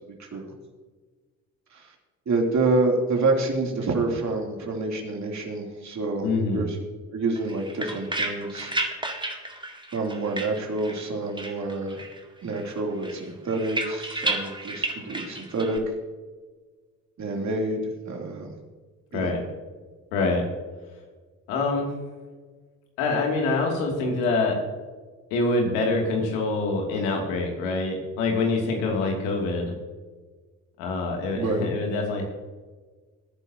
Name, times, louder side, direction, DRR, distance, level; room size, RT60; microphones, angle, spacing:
voice 1, 2.3-6.8 7.1-8.7 9.9-12.0 12.4-15.8 17.2-17.8 18.0-18.5 19.1-19.3 31.3-31.6, right 3 dB, 45° right, 1 dB, 3.1 m, -27 dB
voice 2, 6.2-6.6 19.1-19.4 20.1-20.4 21.5-21.9 23.0-24.6 25.3-29.7 30.8-32.2, left 3 dB, 75° left, 1 dB, 2.7 m, -25 dB
sound 1, 7.4-11.1 11.4-12.2 12.5-15.8, right 2 dB, 10° right, 2.0 m, -32 dB
20.0 x 10.0 x 2.9 m, 1.4 s
hypercardioid pair, 55°, 40 cm